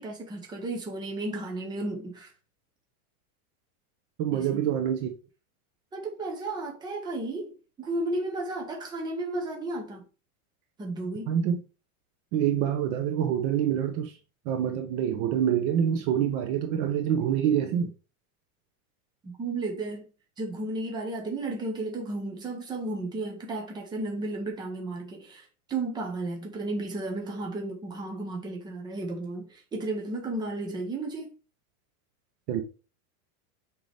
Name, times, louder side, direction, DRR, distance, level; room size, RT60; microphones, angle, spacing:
voice 1, 0.0-2.3 4.3-4.7 5.9-7.5 7.8-10.0 10.8-11.3 19.2-20.0 20.4-31.3, right 2 dB, 10° right, 1.0 m, -33 dB
voice 2, 4.2-5.1 11.3-11.6 12.3-14.1 14.5-17.9 32.5-32.6, right 9 dB, 35° right, 0.8 m, -26 dB
6.4 x 4.7 x 3.5 m
supercardioid pair, 175°, 43 cm